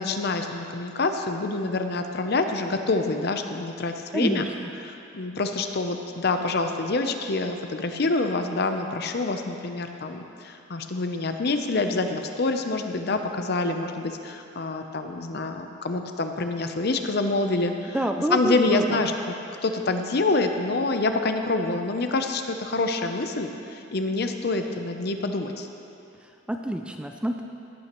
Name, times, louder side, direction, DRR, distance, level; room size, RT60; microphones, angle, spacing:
voice 1, 0.0-4.5 4.8-18.0 18.3-19.3 19.6-25.7, left 3 dB, 50° left, 6 dB, 0.6 m, -26 dB
voice 2, 4.1-4.7 17.9-19.0 26.2-27.4, right 1 dB, 5° right, 4 dB, 0.3 m, -28 dB
17.0 x 8.9 x 3.1 m, 2.8 s
head